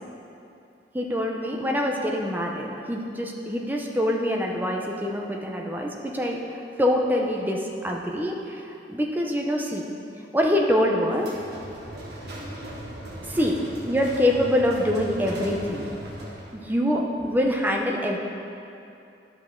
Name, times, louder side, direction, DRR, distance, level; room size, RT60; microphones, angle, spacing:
voice 1, 0.9-6.4 6.8-9.8 10.3-11.3 13.2-15.9 16.5-18.2, left 1 dB, 10° right, 0 dB, 0.6 m, -25 dB
sound 1, 11.2-16.6, right 1 dB, 70° right, 1.4 m, -38 dB
11.0 x 6.0 x 3.7 m, 2.7 s
head